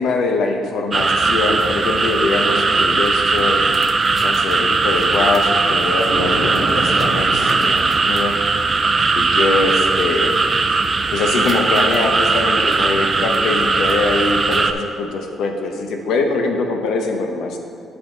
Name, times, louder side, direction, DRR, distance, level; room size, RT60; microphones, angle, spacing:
voice 1, 0.0-3.7 4.2-8.4 9.1-10.4 11.1-17.6, left 3 dB, 80° left, 4 dB, 0.8 m, -22 dB
sound 1, 0.9-14.7, right 4 dB, 35° right, 0.4 m, -18 dB
Thunder, 6.1-8.6, right 1 dB, 85° right, 1.3 m, -27 dB
8.8 x 5.5 x 3.8 m, 2.5 s
cardioid pair, 90°, 0 cm